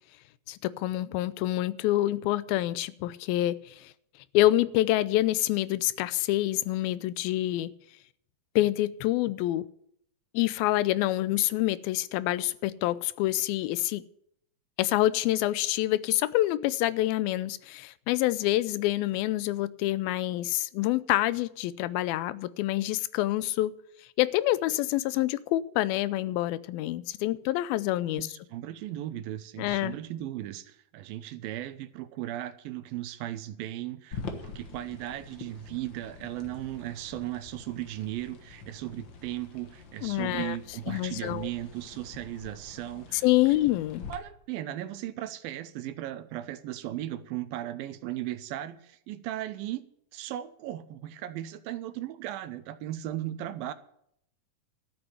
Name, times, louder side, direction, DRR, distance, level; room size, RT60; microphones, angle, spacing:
voice 1, 0.5-3.9 4.3-7.7 8.6-9.7 10.3-14.0 14.8-23.7 24.2-28.4 29.6-30.0 40.0-40.6 40.9-41.5 43.1-44.0, left 15 dB, 85° left, 2.5 m, -27 dB
voice 2, 28.2-43.2 44.1-49.8 50.1-53.7, right 13 dB, 80° right, 2.6 m, -37 dB
sound 1, 34.1-44.1, left 5 dB, 60° left, 1.3 m, -45 dB
13.0 x 7.1 x 9.4 m
omnidirectional pair, 4.2 m